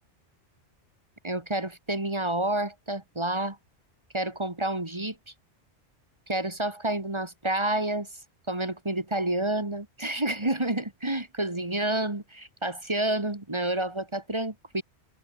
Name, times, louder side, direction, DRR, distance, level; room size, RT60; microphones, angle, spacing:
voice 1, 1.2-3.6 4.1-5.2 6.3-8.2 8.5-14.8, right 1 dB, 25° right, 2.3 m, -29 dB
omnidirectional pair, 1.2 m